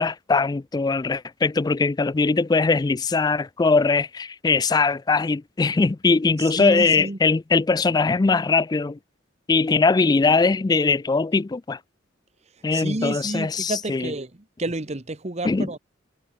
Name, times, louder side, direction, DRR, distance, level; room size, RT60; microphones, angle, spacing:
voice 1, 0.0-9.0 9.5-11.8 12.6-14.1 15.4-15.7, left 4 dB, 20° left, 0.3 m, -21 dB
voice 2, 6.6-7.2 12.7-14.3 14.6-15.8, right 2 dB, 35° right, 1.2 m, -30 dB
head